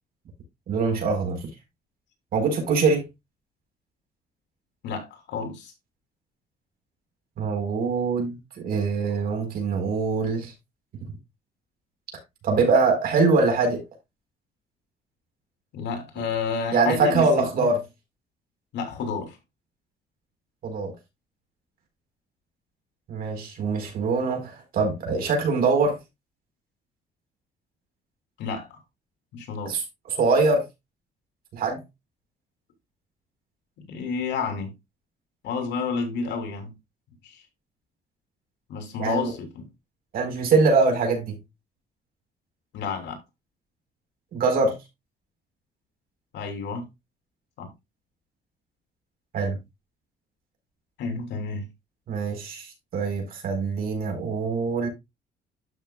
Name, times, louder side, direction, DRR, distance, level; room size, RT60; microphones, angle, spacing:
voice 1, 0.7-1.5 2.3-3.0 7.4-10.5 12.4-13.8 16.7-17.8 20.6-20.9 23.1-26.0 29.7-29.8 30.1-30.6 31.5-31.8 39.0-39.3 40.1-41.4 44.3-44.8 49.3-49.6 52.1-54.9, right 4 dB, 55° right, 4.4 m, -23 dB
voice 2, 4.8-5.7 15.7-17.3 17.6-17.7 18.7-19.4 28.4-28.8 29.3-29.7 33.8-34.7 35.4-36.7 37.2-37.4 38.7-39.7 42.7-43.2 46.3-46.9 47.6-47.7 51.0-51.7, left 5 dB, 80° left, 3.3 m, -30 dB
12.0 x 5.9 x 2.3 m
cardioid pair, 180°, 18 cm